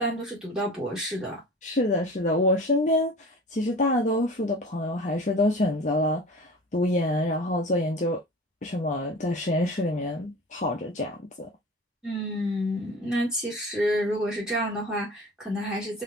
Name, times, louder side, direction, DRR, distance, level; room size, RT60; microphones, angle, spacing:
voice 1, 0.0-1.4 12.0-16.0, equal, 5° right, 2.1 m, -29 dB
voice 2, 1.6-3.1 3.5-6.2 6.7-8.2 8.6-11.5, left 1 dB, 40° left, 0.7 m, -26 dB
3.8 x 2.9 x 2.6 m
head